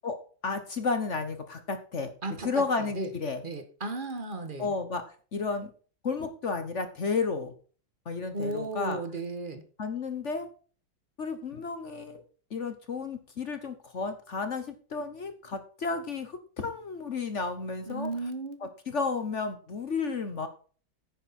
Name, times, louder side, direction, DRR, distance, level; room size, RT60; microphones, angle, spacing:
voice 1, 0.0-2.1 2.4-3.4 4.6-5.0 5.3-5.7 6.0-7.5 8.0-9.0 9.8-10.5 11.2-12.2 12.5-18.1 18.9-20.5, left 4 dB, 45° left, 9 dB, 1.1 m, -32 dB
voice 2, 2.2-3.1 3.4-4.7 8.3-9.6 17.9-18.6, right 2 dB, 30° right, 7 dB, 1.4 m, -35 dB
10.0 x 9.2 x 4.2 m, 0.40 s
omnidirectional pair, 2.1 m